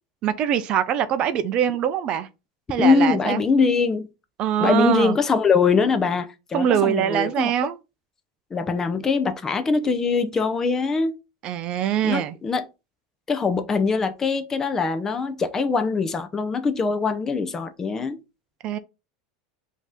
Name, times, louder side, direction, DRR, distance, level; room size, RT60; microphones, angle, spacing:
voice 1, 0.2-2.3 2.7-3.4 4.4-5.2 6.5-7.8 11.4-12.3 18.6-18.8, right 10 dB, 35° right, 0.4 m, -23 dB
voice 2, 2.8-4.1 4.6-7.5 8.5-11.2 12.0-12.6 13.3-18.2, left 4 dB, 15° left, 0.5 m, -22 dB
5.1 x 2.8 x 3.6 m
supercardioid pair, 155°, 3 cm